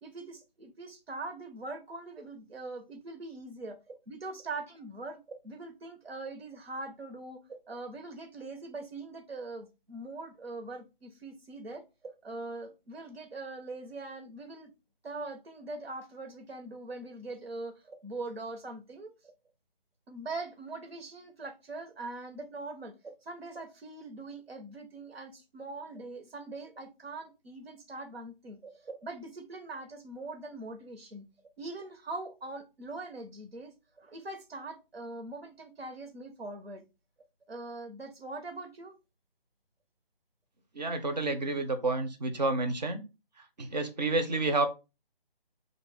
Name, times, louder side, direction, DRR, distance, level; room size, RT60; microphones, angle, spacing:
voice 1, 0.0-11.8 12.2-14.7 15.0-19.3 20.1-31.2 31.6-33.7 34.0-36.8 37.5-39.0, right 2 dB, 85° right, 1.0 m, -42 dB
voice 2, 40.8-43.0 43.6-44.7, right 2 dB, 45° right, 0.6 m, -29 dB
2.4 x 2.1 x 3.3 m
figure-of-eight pair, 165°, 30 cm